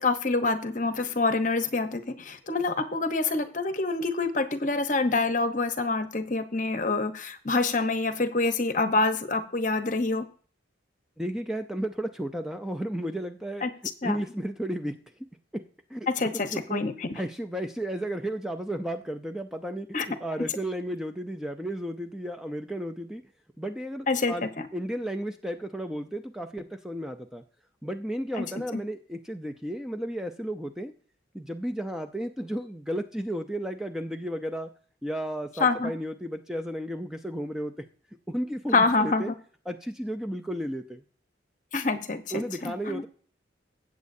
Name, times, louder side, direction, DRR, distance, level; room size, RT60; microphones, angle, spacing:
voice 1, 0.0-10.2 13.6-13.7 14.0-14.2 16.1-17.2 19.9-20.1 24.1-24.7 28.4-28.5 28.7-28.8 35.6-35.9 38.7-39.3 41.7-43.0, left 3 dB, 40° left, 9 dB, 0.9 m, -26 dB
voice 2, 11.2-13.7 14.0-15.0 15.5-15.6 15.9-16.1 16.5-16.9 17.1-23.2 23.6-27.4 27.8-30.9 31.3-34.7 35.0-37.7 38.3-39.3 39.7-41.0 42.3-43.1, right 1 dB, 5° right, 6 dB, 0.5 m, -33 dB
15.0 x 8.3 x 2.7 m, 0.43 s
head